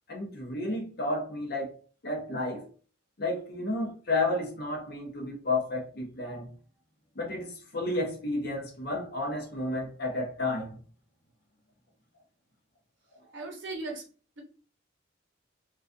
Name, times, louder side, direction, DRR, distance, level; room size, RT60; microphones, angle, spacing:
voice 1, 0.1-2.7 3.2-6.5 7.2-10.8, left 2 dB, 50° left, 0.6 m, -32 dB
voice 2, 13.3-14.0, right 2 dB, 55° right, 0.7 m, -37 dB
2.3 x 2.3 x 2.4 m
head